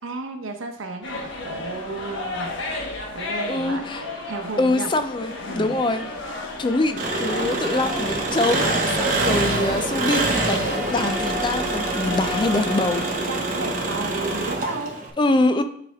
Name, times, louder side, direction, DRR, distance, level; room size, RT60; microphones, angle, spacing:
voice 1, 0.0-2.5 3.1-3.8 4.3-4.9 5.4-5.8 9.1-9.4 12.0-12.2 12.5-13.0 13.3-15.0, right 3 dB, 90° right, 5 dB, 0.9 m, -33 dB
sound 1, 1.0-13.1, left 2 dB, 80° left, 1.2 m, -33 dB
voice 2, 3.5-4.0 4.6-6.0 6.6-13.0 15.2-15.6, left 2 dB, 25° left, 9 dB, 0.3 m, -24 dB
Engine, 7.0-15.1, right 2 dB, 40° right, 0.9 m, -25 dB
8.8 x 3.4 x 3.5 m, 0.66 s
head